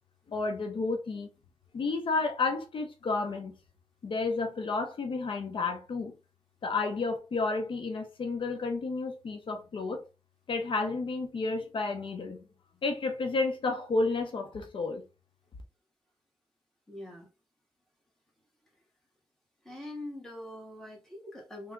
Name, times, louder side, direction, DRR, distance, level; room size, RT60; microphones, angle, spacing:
voice 1, 0.3-1.3 1.7-3.5 4.0-6.1 6.6-10.0 10.5-12.4 12.8-15.0, left 3 dB, 70° left, 0.8 m, -31 dB
voice 2, 16.9-17.3 19.6-21.7, left 1 dB, 5° left, 1.9 m, -43 dB
3.4 x 3.4 x 3.7 m
wide cardioid pair, 135°, 9 cm